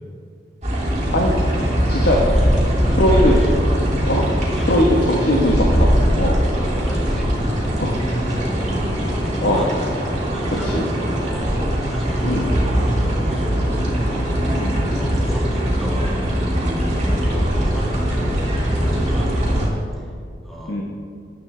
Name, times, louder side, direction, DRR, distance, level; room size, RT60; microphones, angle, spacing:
sound 1, 0.6-19.7, equal, 40° right, 2.4 m, -21 dB
voice 1, 2.2-2.7 3.2-3.6 4.5-4.8 6.6-9.7 10.3-14.2 14.9-20.1 20.4-20.8, equal, ahead, -4 dB, 2.0 m, -32 dB
voice 2, 3.0-3.3 4.0-4.2 4.6-5.9 6.2-6.4 7.8-7.9 9.4-9.7 10.6-10.9 12.2-12.5 14.6-14.9 17.1-17.2 20.7-20.8, left 1 dB, 65° left, -1 dB, 1.2 m, -20 dB
13.5 x 10.0 x 3.3 m, 2.2 s
head